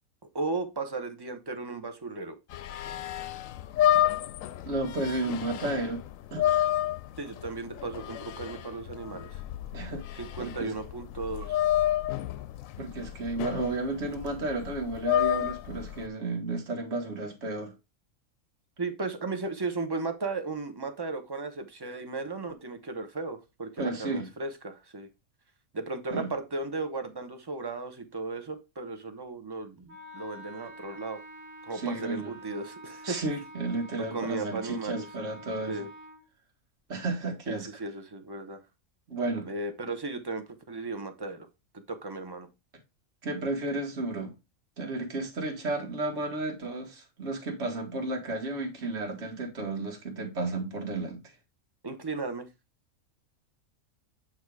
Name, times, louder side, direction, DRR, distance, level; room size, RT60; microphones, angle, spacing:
voice 1, 0.3-2.3 7.2-9.4 10.1-11.6 18.8-25.1 25.7-31.2 31.7-33.2 34.1-35.0 35.7-35.9 37.5-38.6 39.5-41.5 41.7-42.5 51.8-52.5, right 3 dB, 20° right, 0.7 m, -35 dB
sound 1, 2.5-16.1, left 12 dB, 75° left, 0.9 m, -30 dB
voice 2, 4.6-6.0 6.3-6.7 9.7-10.0 10.4-10.7 12.8-17.7 23.8-24.3 26.1-26.3 31.7-32.3 33.0-35.8 36.9-37.7 39.1-39.5 43.2-44.3 44.8-51.2, right 2 dB, 55° right, 1.9 m, -32 dB
Wind instrument woodwind instrument, 29.9-36.2, right 1 dB, 75° right, 1.8 m, -47 dB
8.6 x 3.0 x 4.7 m
omnidirectional pair, 1.4 m